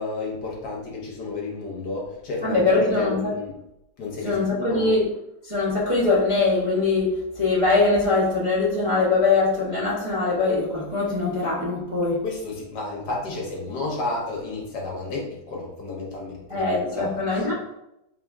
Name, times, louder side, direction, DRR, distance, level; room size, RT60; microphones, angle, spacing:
voice 1, 0.0-3.5 4.0-4.9 12.2-17.5, left 3 dB, 65° left, -2 dB, 1.3 m, -32 dB
voice 2, 2.4-3.3 4.2-5.0 5.4-7.1 7.3-12.2 16.5-17.5, left 3 dB, 25° right, -9 dB, 0.7 m, -22 dB
3.9 x 2.5 x 3.4 m, 0.86 s
omnidirectional pair, 2.1 m